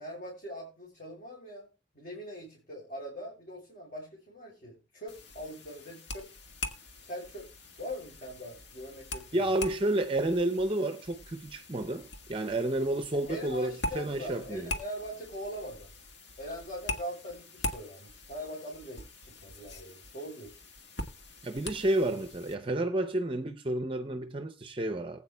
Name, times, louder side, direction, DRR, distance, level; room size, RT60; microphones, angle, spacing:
voice 1, 0.0-1.7 1.9-6.3 7.0-7.5 7.8-9.5 13.3-15.9 16.4-20.6, equal, 45° left, 3.3 m, -42 dB
sound 1, 5.1-22.6, left 2 dB, 70° left, 1.5 m, -43 dB
voice 2, 9.3-14.7 21.4-25.2, right 1 dB, 30° right, 0.5 m, -30 dB
19.5 x 8.6 x 2.3 m
head